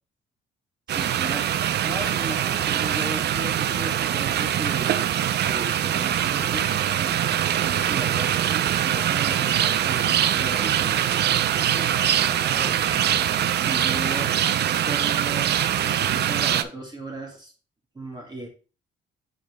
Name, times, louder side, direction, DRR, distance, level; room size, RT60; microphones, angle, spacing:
voice 1, 0.9-5.1 5.4-11.9 13.2-14.3 14.9-17.5 17.9-18.5, right 2 dB, 20° right, 0 dB, 2.1 m, -37 dB
sound 1, 0.9-16.6, right 10 dB, 55° right, 0.5 m, -23 dB
voice 2, 11.9-13.6 14.1-14.4, left 2 dB, 20° left, -2 dB, 2.1 m, -42 dB
5.6 x 5.4 x 3.1 m, 0.34 s
cardioid pair, 90°, 20 cm